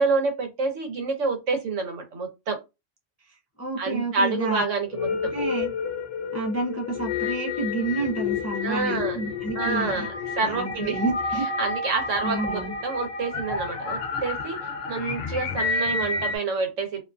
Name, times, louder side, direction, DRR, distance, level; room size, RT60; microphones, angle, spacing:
voice 1, 0.0-2.6 3.8-5.3 8.6-9.2 9.6-11.0 11.6-14.6 14.9-17.0, right 4 dB, 90° right, 1.2 m, -28 dB
voice 2, 3.6-4.6 5.3-5.7 6.3-10.1 10.4-11.5 12.2-12.7, right 2 dB, 25° left, 0.3 m, -29 dB
sound 1, 4.8-16.4, left 4 dB, 60° left, 0.7 m, -30 dB
2.6 x 2.4 x 2.3 m
omnidirectional pair, 1.2 m